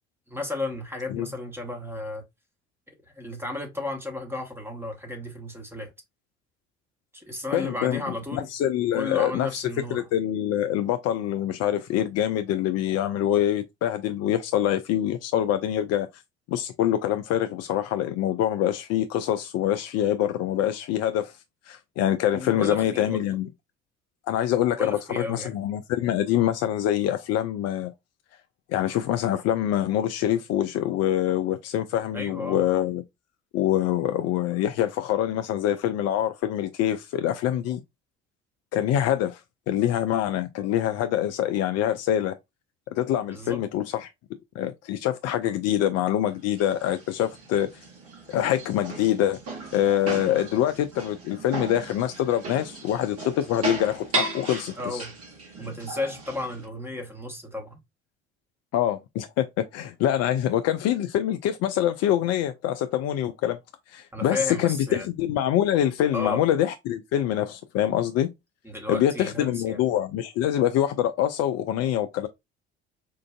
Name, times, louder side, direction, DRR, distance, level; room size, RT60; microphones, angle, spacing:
voice 1, 0.3-2.2 3.1-5.9 7.1-8.5 8.9-10.0 22.3-23.3 24.8-25.6 32.1-32.6 43.3-43.6 54.8-55.1 55.6-57.8 64.1-65.1 66.1-66.4 68.6-69.8, left 2 dB, 5° right, 1.1 m, -33 dB
voice 2, 7.5-8.0 8.3-16.1 16.5-21.3 21.7-23.5 24.3-27.9 28.7-33.0 33.5-37.8 38.7-39.4 39.7-42.4 42.9-44.1 44.6-47.7 48.3-49.4 49.7-55.0 58.7-63.6 63.9-68.3 68.9-72.3, left 11 dB, 50° left, 0.4 m, -25 dB
sound 1, 46.3-56.7, right 3 dB, 45° right, 1.7 m, -36 dB
4.5 x 2.5 x 2.2 m
hypercardioid pair, 60°, 33 cm